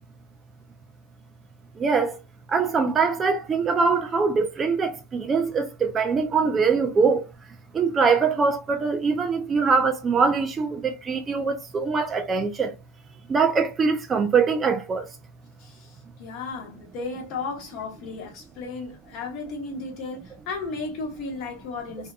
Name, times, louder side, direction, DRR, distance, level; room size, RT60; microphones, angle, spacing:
voice 1, 1.8-2.2 2.5-7.2 7.7-12.7 13.3-15.1, right 5 dB, 20° right, 0.3 m, -23 dB
voice 2, 15.6-22.1, left 4 dB, 40° left, 0.9 m, -34 dB
2.6 x 2.2 x 2.2 m
figure-of-eight pair, 90°, 0 cm